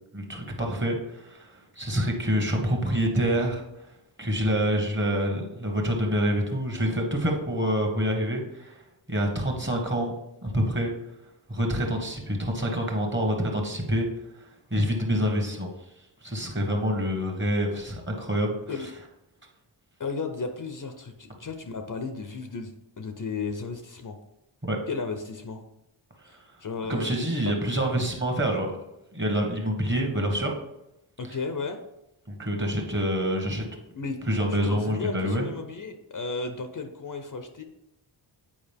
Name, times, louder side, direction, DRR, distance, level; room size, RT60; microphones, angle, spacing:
voice 1, 0.1-3.9 4.2-8.8 9.1-10.1 10.4-10.9 11.5-14.1 14.4-15.7 16.2-18.6 24.6-24.8 26.3-26.4 26.9-28.8 29.1-30.5 31.3-31.4 32.3-33.6 34.3-35.4, equal, 25° right, 2 dB, 1.3 m, -27 dB
voice 2, 20.0-24.2 24.9-25.6 26.6-27.1 27.5-27.6 31.2-31.8 33.9-34.2 34.6-37.6, left 4 dB, 45° left, 6 dB, 0.6 m, -34 dB
8.8 x 4.9 x 3.5 m, 0.87 s
wide cardioid pair, 140°, 45 cm